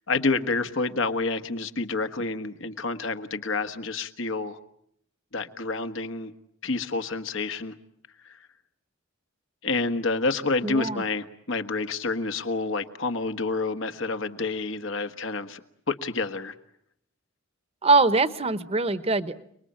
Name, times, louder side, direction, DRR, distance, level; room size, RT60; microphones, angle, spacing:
voice 1, 0.1-4.6 5.3-6.3 6.6-7.7 8.2-8.4 9.6-15.6 15.9-16.5, left 3 dB, 70° left, 8 dB, 1.5 m, -28 dB
voice 2, 10.6-11.0 17.8-19.4, right 3 dB, 30° right, 13 dB, 1.0 m, -22 dB
30.0 x 20.5 x 8.8 m, 0.72 s
head